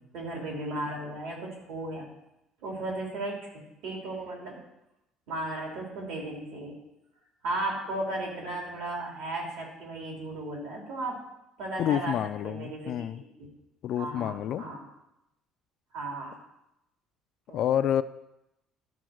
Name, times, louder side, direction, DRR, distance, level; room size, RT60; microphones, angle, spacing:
voice 1, 0.1-2.1 2.6-3.5 3.8-4.6 5.3-6.7 7.4-11.2 11.6-12.2 12.4-13.0 13.4-13.5 14.0-14.8 15.9-16.4 17.5-17.6, right 2 dB, 65° right, -1 dB, 2.9 m, -35 dB
voice 2, 11.8-13.2 13.8-14.7 17.5-18.0, left 10 dB, 45° left, 13 dB, 0.3 m, -28 dB
12.0 x 4.5 x 6.3 m, 0.88 s
cardioid pair, 180°, 0 cm